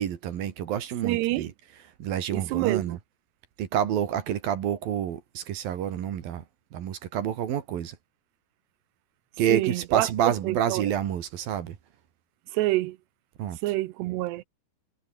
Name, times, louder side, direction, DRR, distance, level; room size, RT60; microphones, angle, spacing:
voice 1, 0.0-1.5 2.0-3.0 3.6-6.4 6.7-7.9 9.4-11.8 13.4-13.6, right 10 dB, 60° right, 3.3 m, -28 dB
voice 2, 1.0-1.5 2.3-3.0 9.5-10.9 12.5-13.0 13.6-14.4, right 18 dB, 80° right, 2.6 m, -27 dB
omnidirectional pair, 5.2 m